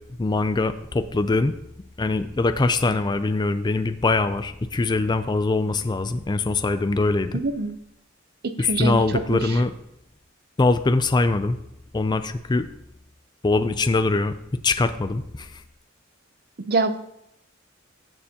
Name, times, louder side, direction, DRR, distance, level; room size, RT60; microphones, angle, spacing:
voice 1, 0.2-1.6 2.0-7.4 8.6-9.7 10.6-11.6 11.9-12.7 13.4-14.3 14.6-15.5, left 3 dB, 20° left, 11 dB, 0.4 m, -22 dB
voice 2, 7.3-7.8 8.4-9.0 9.3-9.5 16.7-17.1, right 3 dB, 50° right, 9 dB, 0.7 m, -25 dB
14.5 x 6.7 x 2.9 m, 0.78 s
head